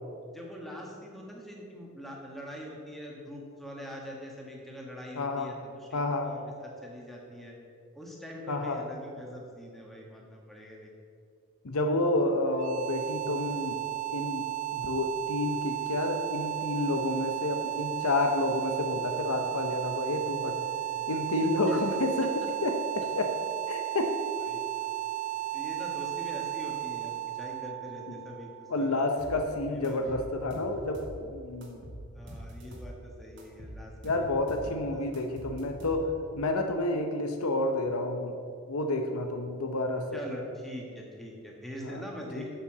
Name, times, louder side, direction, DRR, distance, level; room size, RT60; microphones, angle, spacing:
voice 1, 0.3-7.5 7.9-10.9 21.5-21.8 23.8-24.0 24.5-24.9 25.5-29.1 29.7-30.1 32.1-33.9 34.6-35.2 40.1-42.5, equal, ahead, -2 dB, 1.5 m, -43 dB
voice 2, 5.2-5.5 5.9-6.3 8.5-8.8 11.6-13.8 14.1-14.5 14.7-20.6 21.1-23.3 23.7-24.1 28.1-28.3 28.7-31.8 34.0-38.4 38.7-40.2 41.8-42.0 42.4-42.5, left 2 dB, 85° left, 5 dB, 0.8 m, -30 dB
sound 1, 12.4-29.4, right 16 dB, 35° right, 0.3 m, -34 dB
sound 2, 29.2-29.4 29.8-31.2 31.6-33.0 33.4-34.7 35.1-36.3, equal, 55° right, 1.7 m, -44 dB
7.7 x 6.9 x 7.2 m, 2.4 s
head